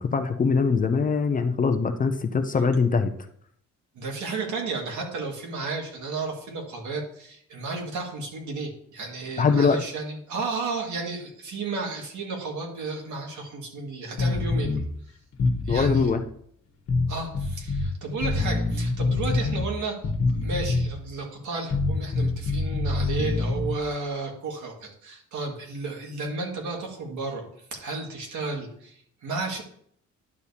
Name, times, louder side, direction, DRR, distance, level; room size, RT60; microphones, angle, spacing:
voice 1, 0.0-3.1 9.4-9.8 15.7-16.2, left 5 dB, 30° left, 7 dB, 0.5 m, -22 dB
voice 2, 3.9-14.8 15.7-16.1 17.1-20.0 20.4-29.6, right 3 dB, 80° right, 0 dB, 2.0 m, -33 dB
sound 1, 14.2-14.8 15.3-16.1 16.9-17.9 18.2-19.7 20.0-21.0 21.7-23.8, left 3 dB, 55° left, 1.2 m, -25 dB
10.5 x 6.6 x 2.8 m, 0.66 s
cardioid pair, 170°, 30 cm